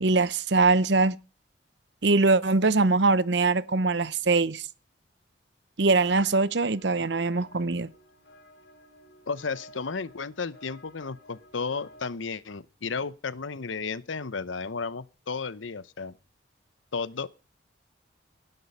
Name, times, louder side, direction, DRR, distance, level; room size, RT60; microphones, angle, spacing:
voice 1, 0.0-1.2 2.0-4.7 5.8-7.9, right 3 dB, 65° right, 0.8 m, -22 dB
sound 1, 5.9-12.1, left 1 dB, 55° left, 5.0 m, -54 dB
voice 2, 9.3-16.1 16.9-17.3, left 4 dB, 85° left, 0.9 m, -33 dB
18.5 x 11.0 x 5.5 m
head